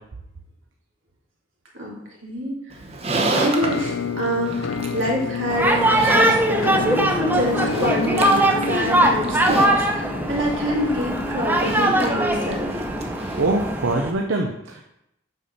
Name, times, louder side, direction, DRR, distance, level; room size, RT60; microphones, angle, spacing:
voice 1, 2.2-2.8 3.3-5.8 6.1-12.7, equal, 85° right, -3 dB, 2.5 m, -26 dB
Livestock farm animals working animals, 2.7-14.0, right 2 dB, 30° right, 0.9 m, -32 dB
Musical instrument, 3.6-13.4, left 5 dB, 90° left, 0.4 m, -30 dB
sound 1, 5.5-14.1, right 1 dB, 10° right, 0.6 m, -21 dB
voice 2, 13.3-14.8, right 2 dB, 70° right, 2 dB, 0.7 m, -23 dB
8.2 x 4.3 x 5.5 m, 0.85 s
head